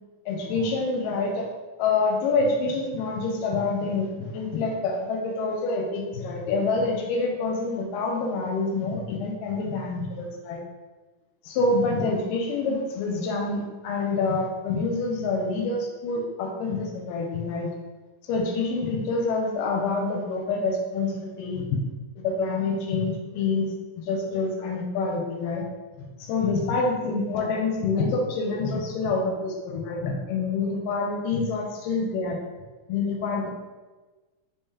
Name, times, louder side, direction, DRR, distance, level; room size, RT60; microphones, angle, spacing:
voice 1, 0.3-1.5 1.8-10.6 11.4-17.7 18.3-21.7 22.2-25.6 26.0-32.4 32.9-33.5, left 3 dB, 90° left, 1 dB, 2.3 m, -27 dB
4.9 x 3.7 x 2.8 m, 1.3 s
omnidirectional pair, 3.8 m